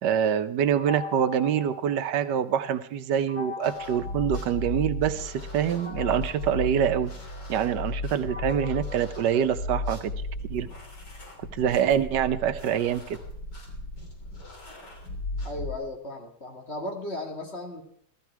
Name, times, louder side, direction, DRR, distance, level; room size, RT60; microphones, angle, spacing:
voice 1, 0.0-7.1 7.5-10.1 10.5-10.7 11.5-13.2, right 9 dB, 80° right, 11 dB, 1.4 m, -25 dB
sound 1, 0.8-2.6 3.3-5.1 5.8-10.1, left 5 dB, 20° left, 2.1 m, -42 dB
sound 2, 3.6-15.7, left 2 dB, 80° left, 3.9 m, -35 dB
voice 2, 15.4-17.8, left 1 dB, 40° left, 2 dB, 2.2 m, -35 dB
16.0 x 13.0 x 4.6 m, 0.66 s
omnidirectional pair, 1.8 m